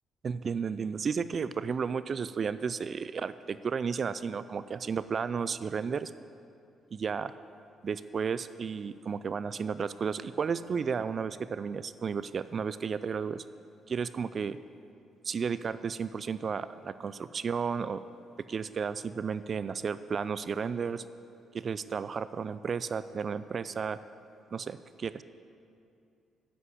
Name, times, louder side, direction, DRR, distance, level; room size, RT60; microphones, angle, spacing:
voice 1, 0.2-6.1 6.9-7.3 7.8-13.4 13.9-14.6 15.2-18.0 18.5-21.0 21.5-24.0 24.5-25.2, right 6 dB, 45° right, 14 dB, 0.3 m, -33 dB
9.6 x 8.3 x 8.3 m, 2.6 s
cardioid pair, 90°, 0 cm